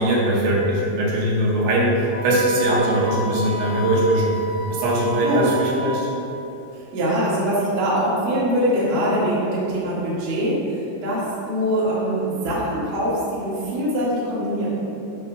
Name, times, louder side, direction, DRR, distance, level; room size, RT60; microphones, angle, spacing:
voice 1, 0.0-4.3 4.7-6.1, right 1 dB, 75° right, -5 dB, 3.3 m, -20 dB
Wind instrument woodwind instrument, 2.1-6.3, right 1 dB, 85° left, 3.1 m, -31 dB
voice 2, 6.7-14.7, equal, 60° right, -8 dB, 1.8 m, -23 dB
8.7 x 3.0 x 5.5 m, 2.9 s
omnidirectional pair, 5.6 m